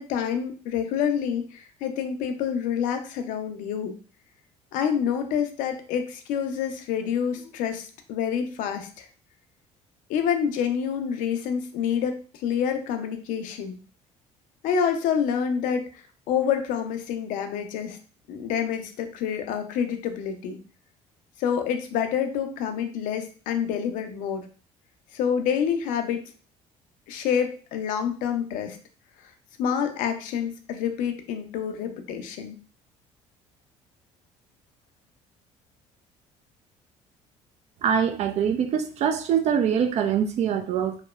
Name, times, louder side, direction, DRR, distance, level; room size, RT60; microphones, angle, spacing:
voice 1, 0.0-4.0 4.7-9.1 10.1-13.8 14.6-18.0 18.3-20.6 21.4-24.5 25.1-26.2 27.1-28.8 29.6-32.6, left 8 dB, 70° left, 6 dB, 0.4 m, -27 dB
voice 2, 37.8-41.0, right 8 dB, 50° right, 6 dB, 0.4 m, -24 dB
2.9 x 2.0 x 2.3 m, 0.38 s
supercardioid pair, 75°, 14 cm